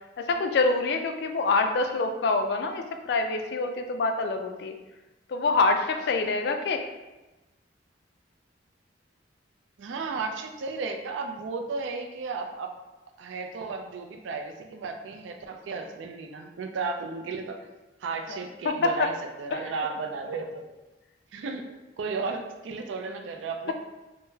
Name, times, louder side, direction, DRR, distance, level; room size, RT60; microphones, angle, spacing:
voice 1, 0.2-4.7 5.3-6.8 18.3-18.4 18.6-19.1 19.5-19.6, left 3 dB, 60° left, 6 dB, 0.3 m, -26 dB
voice 2, 9.8-12.7 13.2-17.7 18.0-19.1 19.4-20.7 21.3-21.7 22.0-23.7, right 4 dB, 85° right, 4 dB, 0.4 m, -34 dB
3.6 x 2.0 x 2.7 m, 1.1 s
head